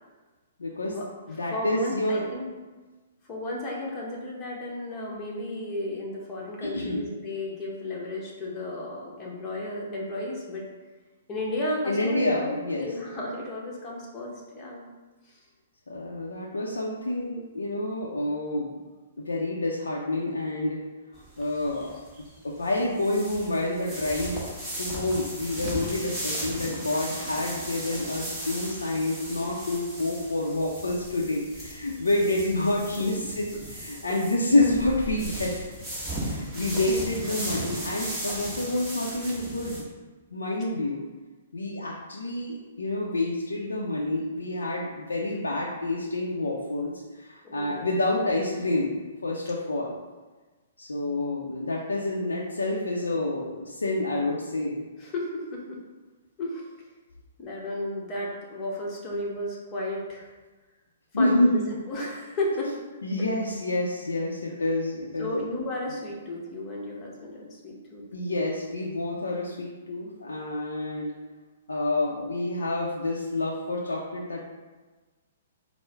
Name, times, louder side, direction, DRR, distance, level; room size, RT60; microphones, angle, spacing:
voice 1, 0.6-1.0 1.3-2.3 6.6-7.0 11.9-12.9 15.9-18.7 19.2-20.8 21.4-22.0 22.4-24.5 24.8-35.5 36.2-39.8 40.3-41.0 41.5-46.9 47.2-50.0 50.8-54.9 61.1-61.6 63.0-65.5 68.1-71.1 71.7-74.4, left 2 dB, 80° left, -3 dB, 0.5 m, -28 dB
voice 2, 1.5-2.5 3.3-10.7 11.3-12.5 12.8-14.8 36.7-36.9 37.3-37.4 47.4-47.9 55.0-55.8 56.4-56.7 57.4-60.3 61.1-61.6 61.9-62.7 65.2-68.0, left 1 dB, 25° left, -4 dB, 1.0 m, -33 dB
sound 1, 21.1-39.8, right 1 dB, 10° right, 1.0 m, -37 dB
4.4 x 2.0 x 3.4 m, 1.3 s
figure-of-eight pair, 120°, 0 cm